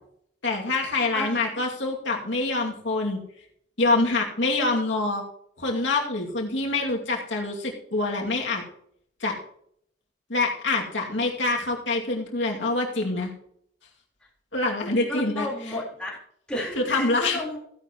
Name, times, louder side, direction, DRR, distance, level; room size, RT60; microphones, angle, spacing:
voice 1, 0.4-3.2 3.8-5.2 5.6-8.6 9.2-9.3 10.3-13.3 14.5-15.5 16.8-17.4, left 2 dB, 80° left, -1 dB, 2.4 m, -25 dB
voice 2, 1.1-1.5 15.1-16.2 16.5-17.6, left 1 dB, 5° left, -5 dB, 4.0 m, -32 dB
15.5 x 10.5 x 3.0 m, 0.68 s
head